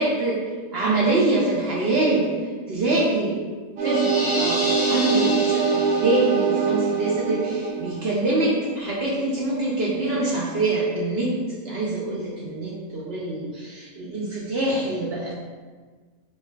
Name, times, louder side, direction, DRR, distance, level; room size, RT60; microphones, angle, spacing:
voice 1, 0.0-0.4 0.7-3.4 3.8-15.3, right 2 dB, 60° right, -5 dB, 0.6 m, -25 dB
sound 1, 3.8-8.9, right 6 dB, 80° right, 1.1 m, -24 dB
sound 2, 3.9-6.4, left 1 dB, 25° left, 0.8 m, -29 dB
5.4 x 2.3 x 2.2 m, 1.4 s
omnidirectional pair, 1.6 m